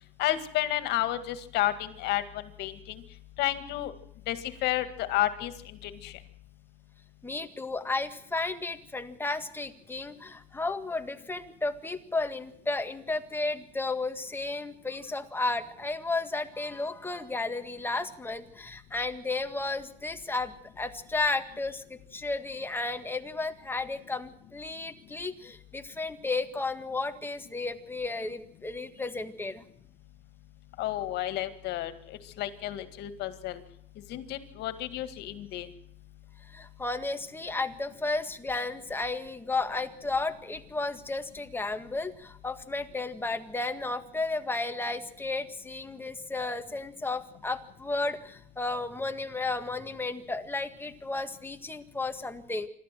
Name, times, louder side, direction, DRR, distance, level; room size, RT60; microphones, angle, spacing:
voice 1, 0.2-2.2 2.6-3.0 3.4-3.9 4.3-5.5 5.8-6.1 30.8-33.6 34.1-35.7, left 14 dB, 85° left, 11 dB, 2.0 m, -31 dB
voice 2, 7.2-29.6 36.5-52.7, left 3 dB, 10° left, 7 dB, 1.8 m, -33 dB
27.0 x 13.0 x 7.6 m, 0.70 s
cardioid pair, 110°, 17 cm